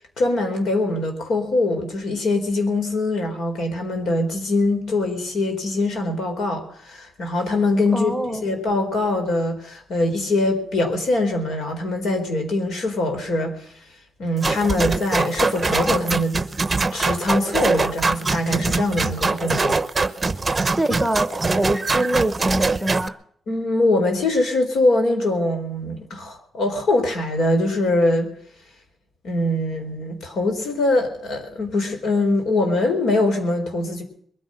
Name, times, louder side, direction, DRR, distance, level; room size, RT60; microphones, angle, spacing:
voice 1, 0.2-8.1 8.4-13.5 14.2-16.4 16.9-19.8 23.5-28.3 29.2-34.0, left 2 dB, 80° left, 4.4 m, -22 dB
voice 2, 7.9-8.4 20.6-23.2, right 1 dB, 5° right, 1.1 m, -24 dB
sound 1, 14.4-23.1, right 3 dB, 20° right, 0.8 m, -23 dB
21.5 x 10.0 x 6.5 m
wide cardioid pair, 150°, 0 cm